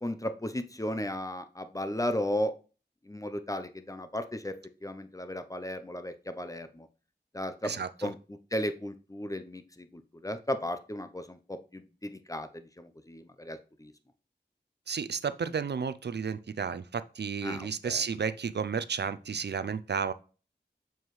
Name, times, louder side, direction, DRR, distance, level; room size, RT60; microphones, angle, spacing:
voice 1, 0.0-2.5 3.1-4.6 4.8-6.9 7.3-13.9 17.4-18.1, left 1 dB, 20° left, 9 dB, 0.6 m, -35 dB
voice 2, 7.6-8.1 14.9-20.1, right 6 dB, 70° right, 14 dB, 0.4 m, -32 dB
7.2 x 4.6 x 3.1 m, 0.35 s
wide cardioid pair, 50°, 18 cm